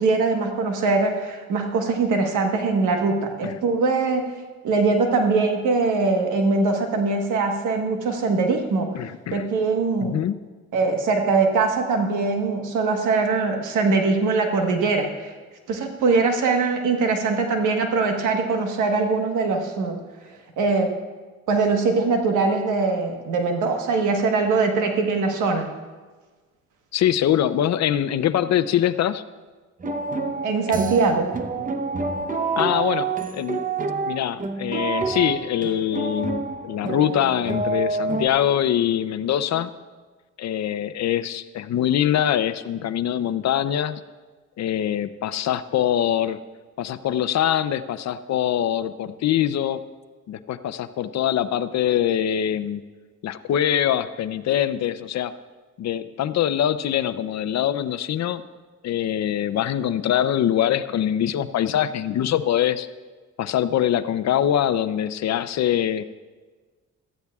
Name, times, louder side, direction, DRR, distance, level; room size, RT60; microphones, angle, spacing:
voice 1, 0.0-4.3 4.6-8.9 9.3-10.2 10.7-15.3 15.7-20.0 20.6-20.9 21.5-25.7 30.4-31.3, right 4 dB, 85° right, 4 dB, 1.3 m, -22 dB
voice 2, 9.0-9.5 10.0-10.4 26.9-29.2 32.6-33.1 33.3-33.6 34.1-39.7 40.4-44.0 44.6-46.4 46.8-49.8 50.3-52.8 53.2-55.3 55.8-58.4 58.8-62.9 63.4-66.0, left 10 dB, 60° left, 12 dB, 0.6 m, -23 dB
sound 1, 29.8-38.3, right 4 dB, 25° right, 0.8 m, -28 dB
17.0 x 13.5 x 2.4 m, 1.3 s
cardioid pair, 90°, 30 cm